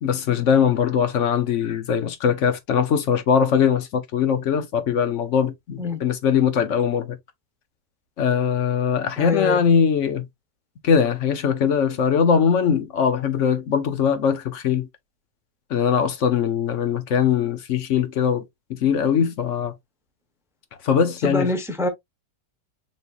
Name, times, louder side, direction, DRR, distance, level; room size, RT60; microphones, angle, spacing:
voice 1, 0.0-7.2 8.2-10.3 10.8-14.9 15.7-18.4 18.7-19.7 20.8-21.5, left 7 dB, 55° left, 1.0 m, -21 dB
voice 2, 9.2-9.6 21.2-21.9, left 2 dB, 5° right, 0.4 m, -25 dB
5.3 x 3.2 x 2.4 m
omnidirectional pair, 1.8 m